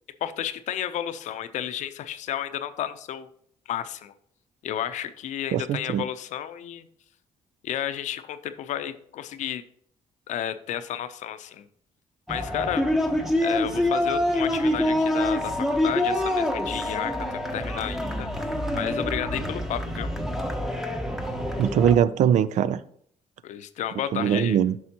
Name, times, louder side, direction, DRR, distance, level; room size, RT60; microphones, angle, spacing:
voice 1, 0.2-3.3 3.7-4.1 4.6-6.9 7.6-9.6 10.3-11.7 12.3-12.8 13.4-18.3 18.7-20.1 23.4-24.6, left 10 dB, 75° left, 0.6 m, -32 dB
voice 2, 5.5-6.0 21.6-22.8 24.1-24.7, right 9 dB, 75° right, 0.4 m, -21 dB
sound 1, 12.3-22.0, left 1 dB, 5° right, 1.0 m, -26 dB
9.4 x 6.2 x 2.9 m
cardioid pair, 80°, 12 cm